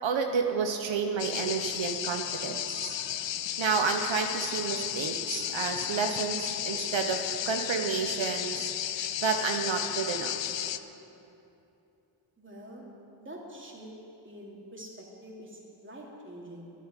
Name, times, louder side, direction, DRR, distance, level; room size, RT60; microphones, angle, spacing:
voice 1, 0.0-3.0 3.6-10.6, right 5 dB, 85° right, 4 dB, 1.0 m, -31 dB
sound 1, 1.2-10.8, left 11 dB, 80° left, 0.6 m, -33 dB
voice 2, 12.4-12.9 13.2-13.9 14.2-16.7, right 1 dB, 25° right, -2 dB, 2.9 m, -46 dB
12.0 x 9.6 x 9.9 m, 2.8 s
wide cardioid pair, 110°, 44 cm